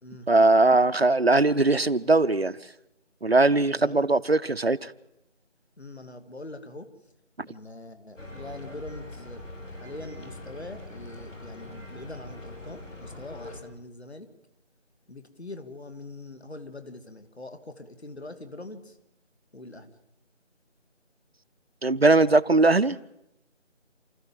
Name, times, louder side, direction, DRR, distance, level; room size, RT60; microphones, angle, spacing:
voice 1, 0.3-2.5 3.2-4.9 21.8-23.0, right 2 dB, 55° right, 0.7 m, -20 dB
voice 2, 5.8-6.9 7.5-9.4 9.8-14.3 15.1-19.0 19.5-19.9, left 2 dB, 60° left, 2.6 m, -43 dB
sound 1, 8.2-13.6, left 1 dB, 85° left, 6.5 m, -42 dB
28.5 x 14.0 x 7.7 m
figure-of-eight pair, 175°, 36 cm